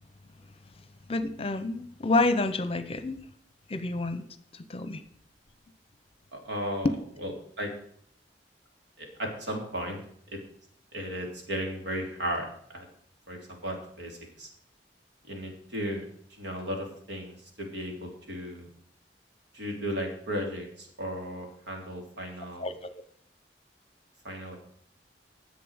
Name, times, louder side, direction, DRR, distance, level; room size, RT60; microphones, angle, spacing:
voice 1, 1.1-3.2 3.7-4.2 4.5-5.0 6.8-6.9 22.6-22.9, left 2 dB, 35° left, 12 dB, 0.8 m, -28 dB
voice 2, 6.4-6.9 7.2-7.3 7.6-7.7 9.0-10.0 10.3-10.4 10.9-12.9 13.3-14.5 15.3-16.0 16.4-18.7 19.5-22.7 24.2-24.6, equal, 80° right, 1 dB, 3.4 m, -35 dB
10.5 x 7.7 x 6.5 m, 0.62 s
head